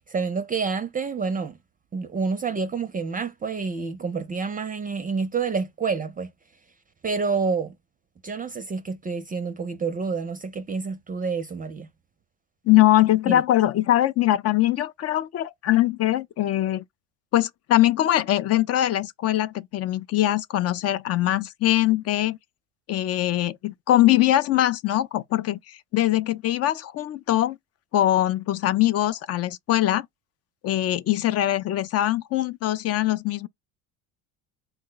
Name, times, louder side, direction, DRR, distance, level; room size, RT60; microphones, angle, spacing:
voice 1, 0.1-1.6 1.9-6.3 7.0-7.7 8.2-11.9 13.3-13.4, right 5 dB, 25° right, 0.5 m, -28 dB
voice 2, 12.7-16.8 17.3-22.4 22.9-27.6 27.9-30.1 30.6-33.5, left 14 dB, 45° left, 0.4 m, -22 dB
4.0 x 2.1 x 3.8 m
supercardioid pair, 85°, 37 cm